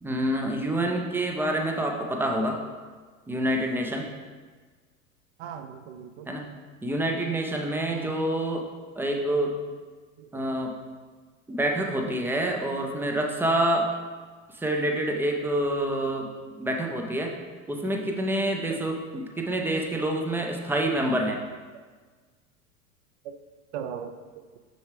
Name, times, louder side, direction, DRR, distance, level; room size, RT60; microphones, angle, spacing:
voice 1, 0.0-2.6 3.3-4.1 6.3-6.4 6.8-8.6 9.0-9.5 10.3-10.7 11.5-13.9 14.6-16.3 16.6-17.3 17.7-21.4, right 1 dB, 5° right, 2 dB, 0.4 m, -27 dB
voice 2, 5.4-6.3 7.9-8.2 10.2-10.5 18.7-18.8 23.7-24.1, right 8 dB, 50° right, 8 dB, 0.6 m, -38 dB
6.5 x 6.3 x 3.3 m, 1.4 s
figure-of-eight pair, 85°, 43 cm